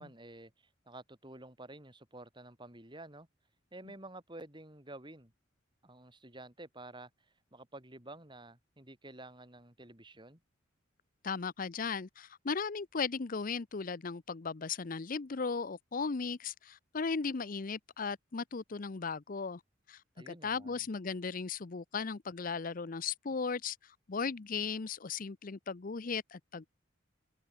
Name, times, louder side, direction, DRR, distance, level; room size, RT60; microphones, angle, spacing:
voice 1, 0.0-3.3 3.7-5.3 5.8-10.4 20.2-20.9, right 2 dB, 25° right, 4.0 m, -51 dB
voice 2, 11.2-19.6 19.9-20.0 20.3-26.7, left 5 dB, 45° left, 0.6 m, -37 dB
head